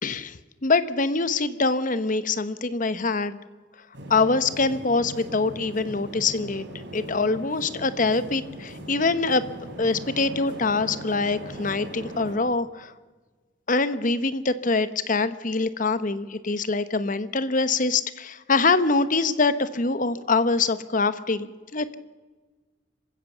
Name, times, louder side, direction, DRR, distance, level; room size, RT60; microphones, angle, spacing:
voice 1, 0.0-3.4 4.1-9.5 9.8-12.9 13.7-21.9, left 3 dB, 40° left, 13 dB, 0.9 m, -24 dB
sound 1, 3.9-12.4, right 1 dB, 60° right, 4.0 m, -39 dB
26.5 x 16.0 x 7.3 m, 1.4 s
head